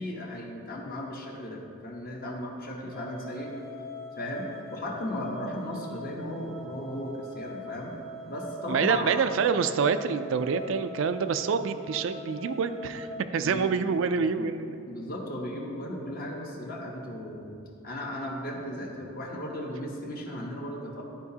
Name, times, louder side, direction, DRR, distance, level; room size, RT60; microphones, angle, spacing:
voice 1, 0.0-3.5 4.1-7.9 8.3-9.1 13.4-13.6 14.4-14.5 14.9-17.6 17.8-21.0, left 1 dB, 45° left, -1 dB, 0.9 m, -36 dB
sound 1, 2.9-13.2, equal, 15° left, 0.6 m, -43 dB
voice 2, 8.7-14.8, right 5 dB, 65° right, 10 dB, 0.3 m, -27 dB
11.5 x 4.7 x 2.8 m, 2.6 s
head